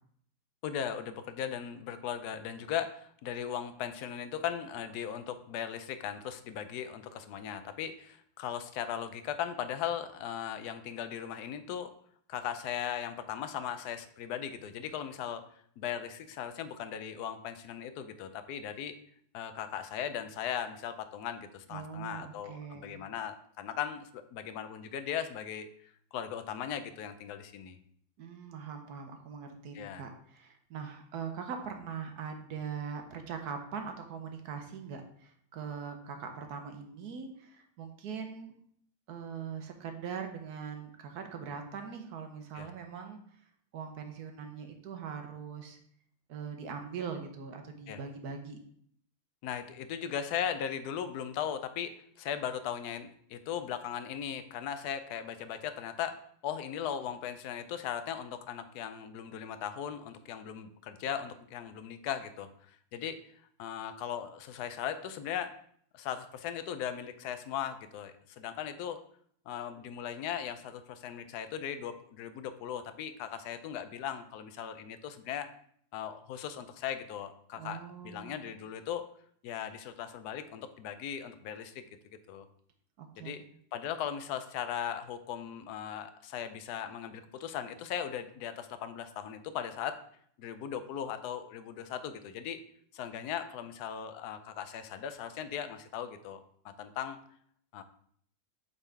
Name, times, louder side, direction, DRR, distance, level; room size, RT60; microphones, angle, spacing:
voice 1, 0.6-11.9 12.3-15.4 15.8-19.0 19.3-25.7 26.1-27.8 29.7-30.0 42.5-42.7 47.9-48.0 49.4-56.2 56.4-63.2 63.6-65.5 65.9-69.0 69.5-75.5 75.9-79.1 79.4-81.9 82.3-82.5 83.1-83.4 83.7-90.0 90.4-92.6 92.9-97.2 97.7-97.8, left 9 dB, 75° left, 10 dB, 1.1 m, -38 dB
voice 2, 21.7-23.0 28.2-38.5 39.1-43.2 43.7-45.8 46.3-48.6 77.5-78.5 83.0-83.5, right 6 dB, 70° right, 5 dB, 1.3 m, -41 dB
8.0 x 3.8 x 3.4 m, 0.63 s
omnidirectional pair, 1.8 m